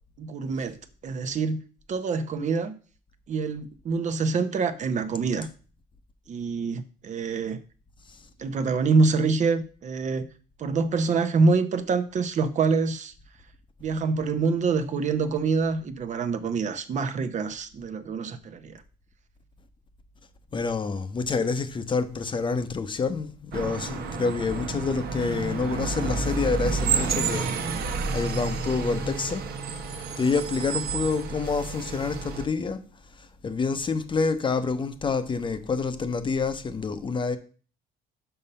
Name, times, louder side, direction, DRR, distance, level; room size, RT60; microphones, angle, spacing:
voice 1, 0.2-1.6 1.9-2.7 3.3-5.5 6.3-7.6 8.4-10.3 10.6-13.1 13.8-18.8, right 4 dB, 45° right, 0.8 m, -26 dB
voice 2, 20.5-27.6 28.1-29.4 30.2-32.8 33.4-37.4, left 4 dB, 30° left, 0.8 m, -27 dB
sound 1, 23.5-32.5, right 4 dB, 70° right, 1.2 m, -30 dB
5.7 x 5.4 x 5.4 m
cardioid pair, 110°, 17 cm